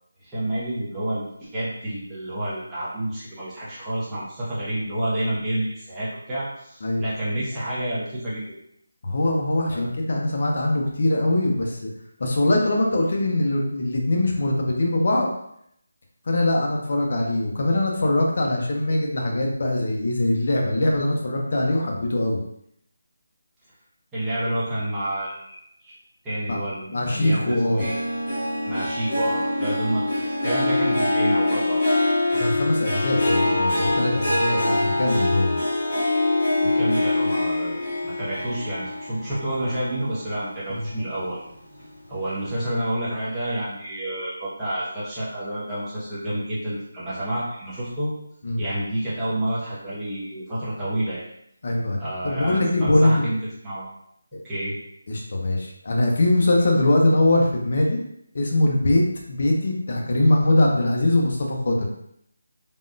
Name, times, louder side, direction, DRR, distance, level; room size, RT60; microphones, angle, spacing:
voice 1, 0.2-8.6 9.7-9.9 24.1-25.9 26.2-28.0 28.6-30.0 30.4-32.1 36.6-41.4 42.1-48.1 48.6-51.2 52.0-53.4 53.6-53.8 54.4-54.7, right 1 dB, 5° right, -11 dB, 0.7 m, -29 dB
voice 2, 9.0-11.8 12.2-15.3 16.3-22.4 26.5-26.6 26.9-27.8 32.3-35.5 40.7-40.9 48.4-48.6 51.6-52.0 52.2-53.3 55.1-58.0 58.3-61.9, left 1 dB, 45° left, 0 dB, 0.6 m, -22 dB
Harp, 27.8-40.5 40.9-41.3 41.8-41.9, left 2 dB, 25° left, 1.2 m, -24 dB
3.5 x 2.2 x 2.5 m, 0.72 s
figure-of-eight pair, 175°, 0 cm